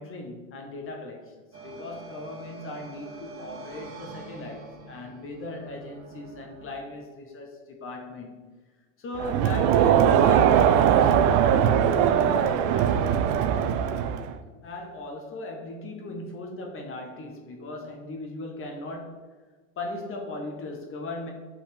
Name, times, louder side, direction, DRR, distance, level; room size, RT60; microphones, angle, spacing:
voice 1, 0.0-1.3 1.6-8.4 9.0-13.3 14.6-19.2 19.8-21.3, left 2 dB, 30° left, 2 dB, 1.1 m, -38 dB
sound 1, 1.5-6.8, right 3 dB, 35° right, 1.8 m, -45 dB
Crowd, 9.2-14.4, right 9 dB, 50° right, 0.6 m, -20 dB
5.2 x 4.3 x 5.1 m, 1.4 s
supercardioid pair, 120°, 40 cm